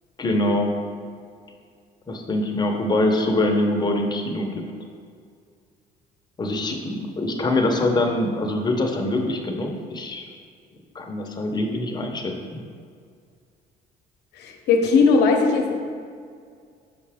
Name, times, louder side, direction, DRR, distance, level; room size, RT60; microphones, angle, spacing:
voice 1, 0.2-0.8 2.1-4.7 6.4-10.3 10.9-12.6, left 1 dB, 25° left, 2 dB, 0.7 m, -24 dB
voice 2, 14.4-15.7, left 4 dB, 80° left, 3 dB, 0.8 m, -18 dB
5.8 x 5.1 x 3.5 m, 2.2 s
cardioid pair, 110°, 17 cm